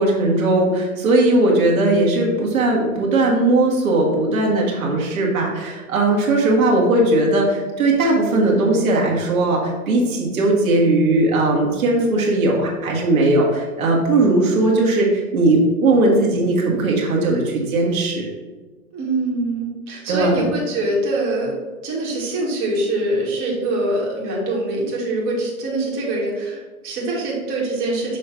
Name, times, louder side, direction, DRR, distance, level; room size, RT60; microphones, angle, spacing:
voice 1, 0.0-18.2 20.1-20.4, right 2 dB, 70° right, -2 dB, 1.9 m, -18 dB
voice 2, 18.9-21.5 21.8-28.2, right 2 dB, 30° right, -5 dB, 2.0 m, -24 dB
6.7 x 3.1 x 5.6 m, 1.3 s
hypercardioid pair, 130°, 43 cm